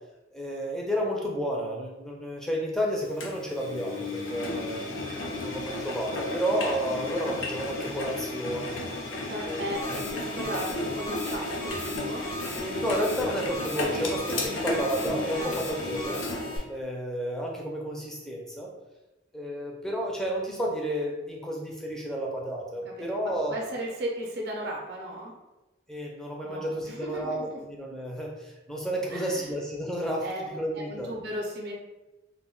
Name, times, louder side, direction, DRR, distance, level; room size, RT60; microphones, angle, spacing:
voice 1, 0.3-4.8 5.4-8.9 9.4-9.6 12.5-16.2 16.7-18.7 19.3-23.6 25.9-31.1, equal, 5° left, -2 dB, 0.4 m, -31 dB
Engine, 3.2-16.6, left 2 dB, 90° left, 0.5 m, -33 dB
voice 2, 9.3-12.3 15.4-15.7 22.8-23.1 23.5-25.3 26.4-27.6 29.1-29.5 30.2-30.5 30.7-31.7, right 1 dB, 60° right, -1 dB, 0.5 m, -36 dB
sound 1, 9.7-16.6, equal, 45° left, 0.6 m, -39 dB
2.1 x 2.1 x 3.7 m, 1.0 s
head